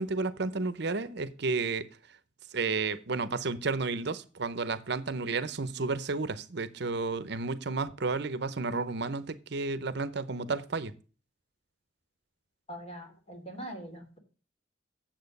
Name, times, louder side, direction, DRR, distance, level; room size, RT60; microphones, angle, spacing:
voice 1, 0.0-1.9 2.5-10.9, right 3 dB, 60° right, 0.8 m, -32 dB
voice 2, 12.7-14.2, right 1 dB, 35° left, 3.0 m, -42 dB
9.2 x 7.5 x 5.2 m
head